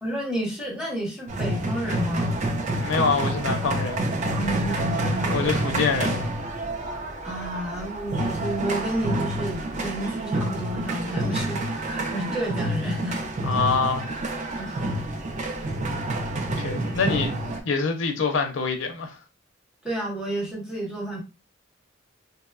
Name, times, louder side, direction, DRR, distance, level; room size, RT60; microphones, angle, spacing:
voice 1, 0.0-2.4 4.3-5.4 7.2-13.2 14.6-14.8 19.8-21.2, right 1 dB, 5° right, 0.8 m, -31 dB
sound 1, 1.3-17.6, right 1 dB, 40° right, 0.4 m, -28 dB
voice 2, 2.8-4.0 5.3-6.2 13.4-14.1 16.6-17.4 17.6-19.1, left 4 dB, 80° left, 0.5 m, -25 dB
2.8 x 2.1 x 2.3 m
head